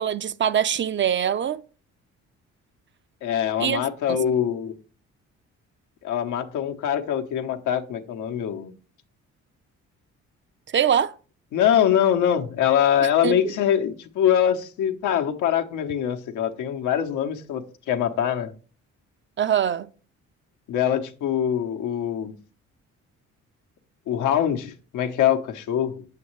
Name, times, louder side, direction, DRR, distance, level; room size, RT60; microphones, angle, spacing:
voice 1, 0.0-1.6 3.6-3.8 4.1-4.2 10.7-11.1 13.2-13.5 19.4-19.9, right 9 dB, 40° right, 0.5 m, -23 dB
voice 2, 3.2-4.8 6.0-8.7 11.5-18.5 20.7-22.4 24.1-26.0, left 9 dB, 90° left, 1.0 m, -23 dB
8.7 x 7.6 x 3.1 m
cardioid pair, 90°, 30 cm